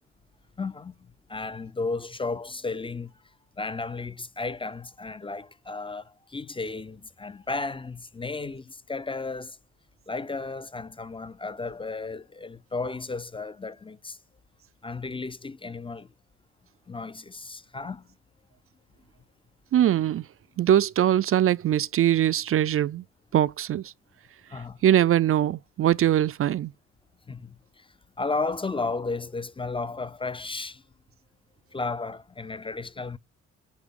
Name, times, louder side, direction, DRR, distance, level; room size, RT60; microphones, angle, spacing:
voice 1, 0.6-0.9 1.3-3.1 3.6-9.6 10.1-14.2 14.8-16.1 16.9-18.0 24.5-24.8 27.3-27.9 28.2-30.8 31.7-33.2, left 3 dB, 15° left, 0.5 m, -33 dB
voice 2, 19.7-20.3 20.6-23.0 23.3-23.9 24.8-26.7, right 11 dB, 45° right, 0.5 m, -22 dB
9.7 x 3.3 x 3.7 m
cardioid pair, 90°, 30 cm